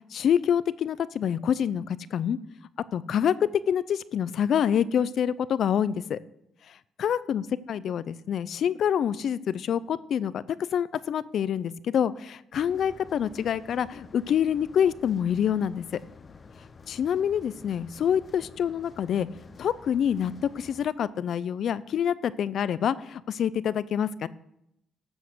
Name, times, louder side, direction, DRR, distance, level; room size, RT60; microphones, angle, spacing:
voice 1, 0.1-2.4 2.9-3.3 3.7-6.2 7.0-7.4 7.7-10.4 10.7-15.8 16.9-19.3 19.6-24.3, left 8 dB, 65° left, 17 dB, 0.5 m, -26 dB
sound 1, 12.5-20.9, left 4 dB, 35° left, 0.9 m, -50 dB
13.0 x 7.2 x 6.2 m, 0.81 s
cardioid pair, 90°, 0 cm